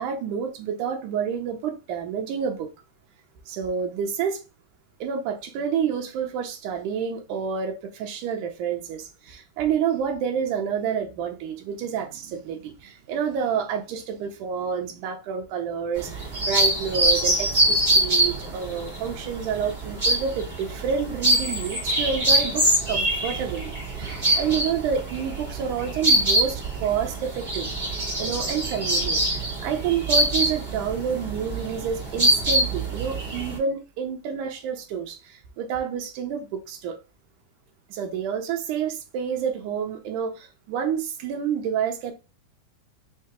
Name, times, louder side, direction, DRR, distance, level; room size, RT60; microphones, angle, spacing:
voice 1, 0.0-2.7 3.5-4.4 5.0-27.7 28.2-37.0 37.9-42.1, right 7 dB, 70° right, 2.1 m, -29 dB
sound 1, 16.0-33.6, right 1 dB, 20° right, 1.4 m, -24 dB
5.8 x 2.7 x 2.9 m
omnidirectional pair, 4.1 m